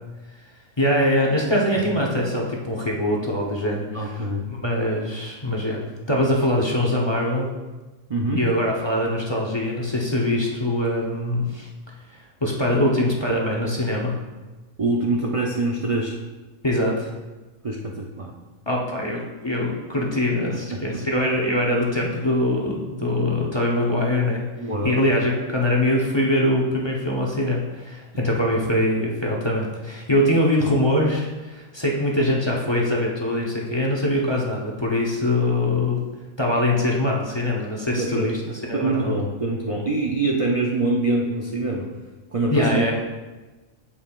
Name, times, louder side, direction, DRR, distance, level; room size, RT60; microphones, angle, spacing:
voice 1, 0.8-4.1 4.5-7.5 8.3-11.7 12.1-14.2 16.6-17.1 18.7-24.4 24.8-36.0 36.4-39.2 42.5-42.9, left 1 dB, 25° left, -3 dB, 0.8 m, -23 dB
voice 2, 3.9-4.4 8.1-8.5 14.8-16.2 17.6-18.3 20.7-20.8 24.6-25.0 28.1-28.2 37.9-38.3 38.7-41.9 42.3-42.9, right 2 dB, 40° right, -1 dB, 0.5 m, -24 dB
8.5 x 7.5 x 2.4 m, 1.2 s
omnidirectional pair, 1.4 m